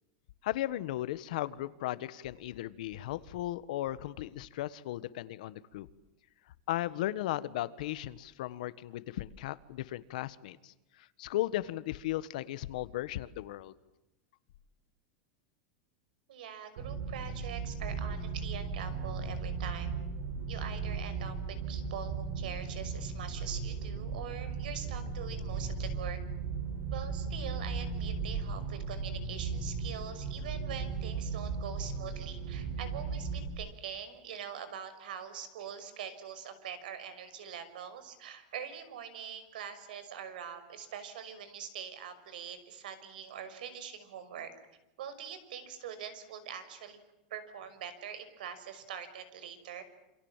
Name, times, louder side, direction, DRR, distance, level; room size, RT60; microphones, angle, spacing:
voice 1, 0.4-5.9 6.7-10.7 11.2-13.7, left 14 dB, 60° left, 15 dB, 1.5 m, -36 dB
voice 2, 16.3-20.0 20.5-26.2 26.9-44.5 45.0-47.0 47.3-49.8, right 8 dB, 90° right, 12 dB, 5.9 m, -43 dB
sound 1, 16.8-33.5, right 5 dB, 50° right, 5.5 m, -36 dB
28.0 x 27.0 x 7.5 m, 0.97 s
supercardioid pair, 180°, 5 cm